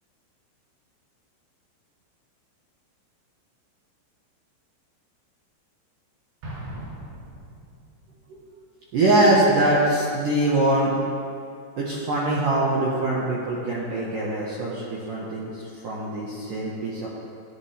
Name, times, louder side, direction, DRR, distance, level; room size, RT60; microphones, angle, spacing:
Explosion, 6.4-8.1, right 1 dB, 60° right, 5.0 m, -39 dB
voice 1, 8.9-10.9 11.8-15.5 15.8-17.1, right 1 dB, 90° right, -6 dB, 1.9 m, -23 dB
16.5 x 10.0 x 3.4 m, 2.3 s
omnidirectional pair, 6.0 m